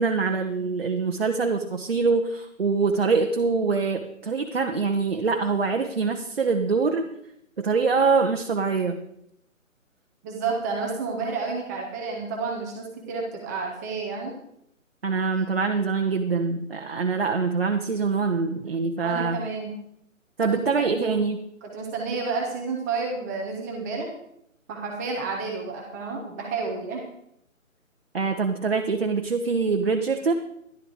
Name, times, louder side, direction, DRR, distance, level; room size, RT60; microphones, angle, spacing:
voice 1, 0.0-7.0 7.6-9.0 15.0-19.4 20.4-21.4 28.1-30.3, right 4 dB, 50° right, 3 dB, 1.2 m, -24 dB
voice 2, 10.2-14.3 15.3-15.4 19.0-19.8 20.4-20.7 20.9-21.3 21.6-24.1 24.7-27.0, right 4 dB, 15° right, 0 dB, 1.3 m, -30 dB
12.0 x 11.5 x 4.8 m, 0.75 s
figure-of-eight pair, 145°, 40 cm